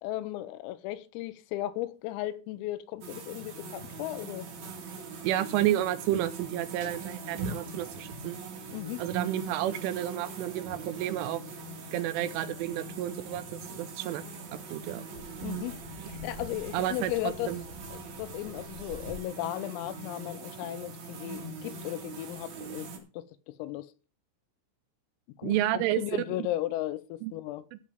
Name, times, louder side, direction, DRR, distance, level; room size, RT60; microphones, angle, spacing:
voice 1, 0.0-4.5 8.7-9.0 15.4-15.8 16.1-17.6 17.9-23.9 25.4-27.6, left 15 dB, 85° left, 3.5 m, -36 dB
sound 1, 3.0-23.0, right 4 dB, 50° right, 2.7 m, -41 dB
voice 2, 5.2-8.4 9.0-11.4 11.9-14.2 14.7-15.0 16.0-16.1 16.7-17.6 25.4-26.0 26.4-26.5 27.2-27.3 27.7-27.8, right 13 dB, 80° right, 3.0 m, -31 dB
14.0 x 4.9 x 7.6 m
omnidirectional pair, 6.0 m